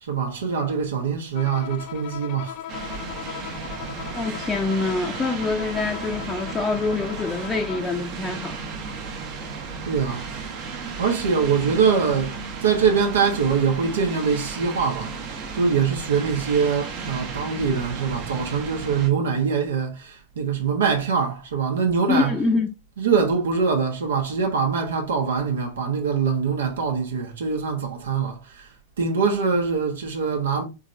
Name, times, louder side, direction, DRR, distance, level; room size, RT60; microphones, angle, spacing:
voice 1, 0.0-2.7 9.8-10.3 11.0-22.3 23.0-28.7 29.0-30.6, right 6 dB, 65° right, 1.2 m, -23 dB
Bowed string instrument, 1.3-8.0, left 11 dB, 40° left, 0.4 m, -38 dB
sound 1, 2.7-19.1, right 5 dB, 45° right, 1.2 m, -34 dB
voice 2, 4.1-8.6 22.1-22.7, left 3 dB, 15° left, 0.7 m, -25 dB
4.2 x 3.7 x 2.6 m
figure-of-eight pair, 90°, 0 cm